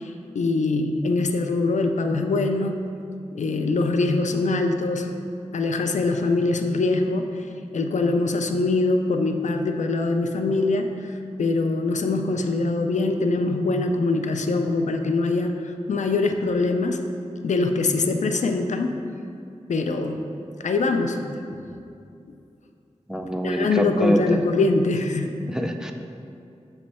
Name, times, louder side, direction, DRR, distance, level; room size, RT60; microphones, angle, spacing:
voice 1, 0.0-2.8 3.3-5.1 5.5-7.5 7.7-17.0 17.4-19.0 19.7-20.2 20.6-21.2 23.4-25.3, left 3 dB, 90° left, 5 dB, 0.4 m, -23 dB
voice 2, 23.1-24.4 25.5-25.9, equal, 5° right, 4 dB, 0.4 m, -24 dB
7.1 x 3.2 x 4.1 m, 2.6 s
wide cardioid pair, 90°, 12 cm